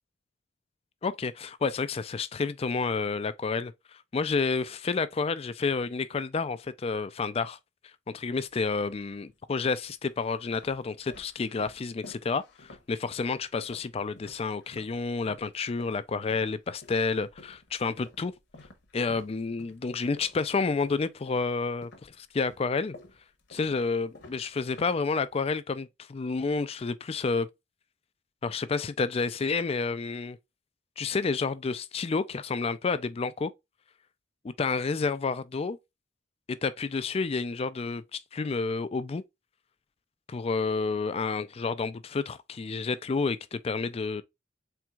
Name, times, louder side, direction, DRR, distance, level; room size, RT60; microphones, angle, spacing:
voice 1, 1.0-7.6 8.1-18.3 18.9-23.0 23.5-27.5 28.4-30.4 31.0-33.5 34.4-35.8 36.5-39.2 40.3-44.2, left 4 dB, 30° left, 0.4 m, -30 dB
sound 1, 8.4-9.2 9.9-15.0 15.2-21.5 21.8-25.5, left 2 dB, 55° left, 1.0 m, -52 dB
4.5 x 3.5 x 2.3 m
head